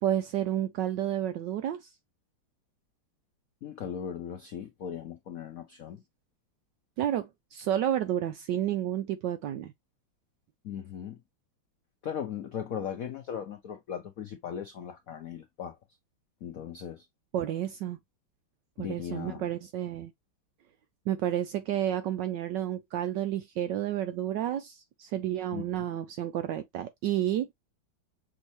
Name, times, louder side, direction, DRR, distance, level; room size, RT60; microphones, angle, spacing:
voice 1, 0.0-1.9 7.0-9.7 17.3-18.0 18.8-20.1 21.1-27.5, right 11 dB, 75° right, 1.0 m, -30 dB
voice 2, 3.6-6.0 10.6-11.2 12.0-15.8 16.4-17.0 18.8-19.5 25.5-25.9, left 8 dB, 75° left, 0.8 m, -38 dB
6.3 x 2.7 x 3.0 m
omnidirectional pair, 2.4 m